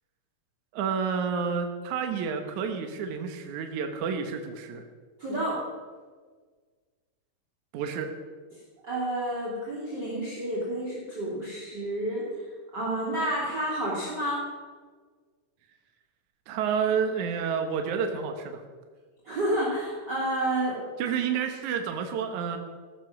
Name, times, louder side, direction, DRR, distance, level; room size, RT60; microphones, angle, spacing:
voice 1, 0.7-4.8 7.7-8.1 16.5-18.6 21.0-22.6, right 6 dB, 70° right, 5 dB, 2.6 m, -29 dB
voice 2, 5.2-5.6 8.8-12.2 12.7-14.4 19.2-20.9, right 1 dB, 30° right, -5 dB, 3.4 m, -30 dB
16.0 x 13.0 x 6.0 m, 1.5 s
omnidirectional pair, 3.7 m